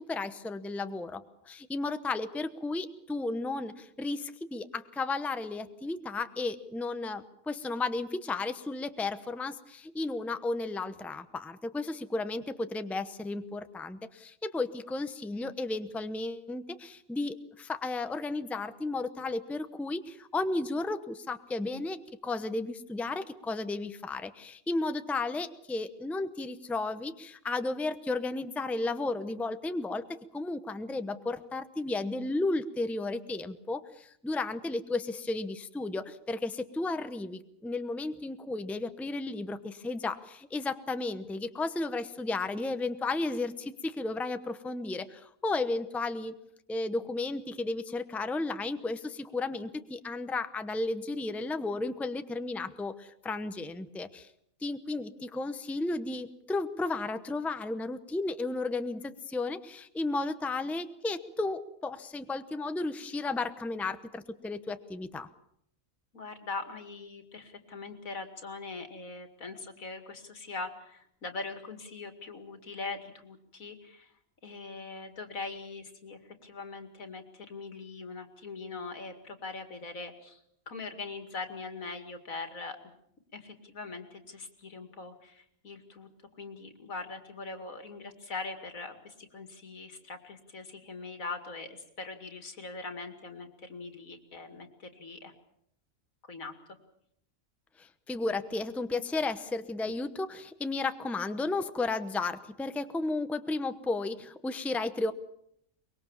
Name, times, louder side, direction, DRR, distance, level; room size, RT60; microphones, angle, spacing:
voice 1, 0.0-46.4 46.7-54.3 54.6-65.3 97.8-105.1, left 3 dB, ahead, 10 dB, 0.8 m, -33 dB
voice 2, 66.1-74.1 74.4-82.9 83.3-86.1 86.4-95.3 96.3-96.5, left 3 dB, 85° left, 7 dB, 2.7 m, -42 dB
24.0 x 21.5 x 7.2 m, 0.73 s
omnidirectional pair, 1.4 m